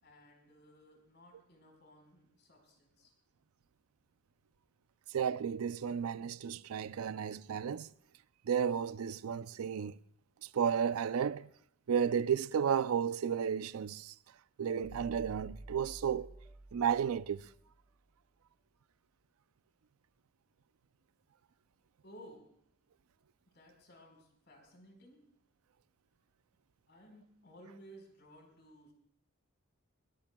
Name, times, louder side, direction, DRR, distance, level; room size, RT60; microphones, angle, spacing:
voice 1, 0.0-3.1 22.0-22.5 23.5-25.3 26.9-28.9, equal, 50° left, 4.5 m, -57 dB
voice 2, 5.1-7.9 8.5-10.0 10.5-11.5 11.9-14.1 14.6-16.3 16.7-17.4, right 7 dB, 85° right, 0.4 m, -33 dB
sound 1, 14.7-17.9, right 1 dB, 10° right, 1.2 m, -51 dB
21.0 x 20.0 x 2.3 m
head